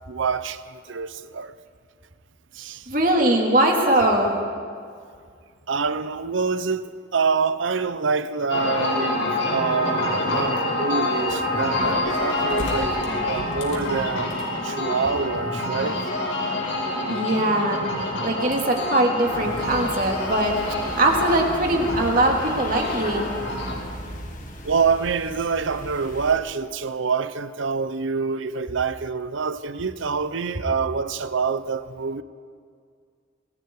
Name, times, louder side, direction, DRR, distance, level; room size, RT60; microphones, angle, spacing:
voice 1, 0.1-1.5 2.5-2.9 5.7-9.2 9.5-12.9 13.2-16.0 24.6-32.2, right 5 dB, 85° right, 0.7 m, -26 dB
voice 2, 2.9-4.3 17.1-17.8 18.2-23.2, right 1 dB, 45° right, 2.9 m, -21 dB
sound 1, 8.5-23.7, left 1 dB, 90° left, 5.2 m, -27 dB
sound 2, 19.3-26.4, left 1 dB, 40° left, 2.1 m, -36 dB
27.5 x 20.0 x 4.8 m
head